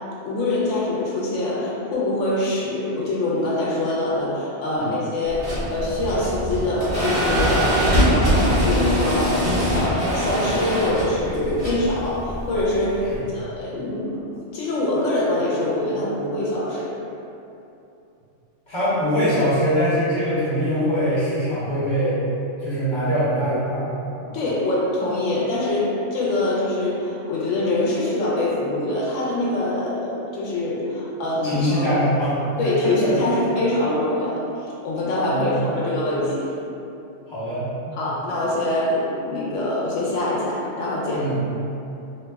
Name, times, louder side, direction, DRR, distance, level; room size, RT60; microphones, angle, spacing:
voice 1, 0.2-7.8 8.1-13.0 13.3-14.1 14.5-17.0 24.3-31.9 32.6-36.5 37.9-41.3, left 1 dB, 80° left, -6 dB, 0.9 m, -24 dB
sound 1, 5.3-13.2, equal, 50° right, 1.2 m, -22 dB
voice 2, 18.7-22.2 22.6-23.8 24.2-24.4 31.4-32.3 32.8-33.2 35.2-35.7 37.3-38.0 41.1-41.4, equal, 25° left, -11 dB, 0.9 m, -23 dB
2.7 x 2.0 x 3.4 m, 2.8 s
omnidirectional pair, 1.3 m